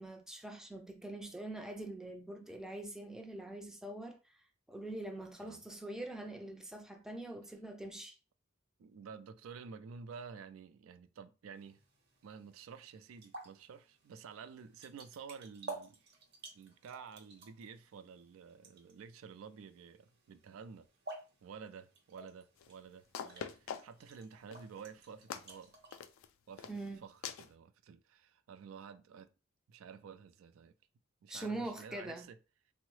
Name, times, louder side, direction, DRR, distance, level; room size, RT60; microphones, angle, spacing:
voice 1, 0.0-8.2 26.7-27.0 31.3-32.3, right 2 dB, 5° right, 0.4 m, -44 dB
voice 2, 8.8-11.8 12.2-16.1 16.5-20.9 21.4-25.8 26.5-29.3 29.7-30.7 31.2-32.4, right 6 dB, 80° right, 0.3 m, -51 dB
sound 1, 11.6-26.0, right 2 dB, 55° right, 0.9 m, -53 dB
sound 2, 22.6-22.7 23.1-24.1 24.5-24.8 25.3-25.6 25.9-26.3 26.6-26.9 27.2-27.5, left 7 dB, 75° left, 0.3 m, -43 dB
3.6 x 2.0 x 3.1 m
head